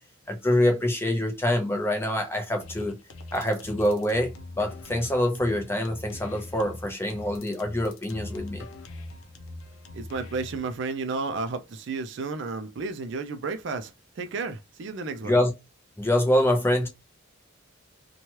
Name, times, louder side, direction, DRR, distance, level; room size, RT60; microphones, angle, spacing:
voice 1, 0.3-3.0 3.3-8.6 15.2-15.5 16.0-16.9, left 1 dB, 10° left, 0.6 m, -25 dB
sound 1, 2.6-10.6, left 2 dB, 75° left, 0.5 m, -42 dB
voice 2, 9.9-15.4, right 4 dB, 55° right, 0.4 m, -32 dB
3.0 x 2.2 x 2.8 m
head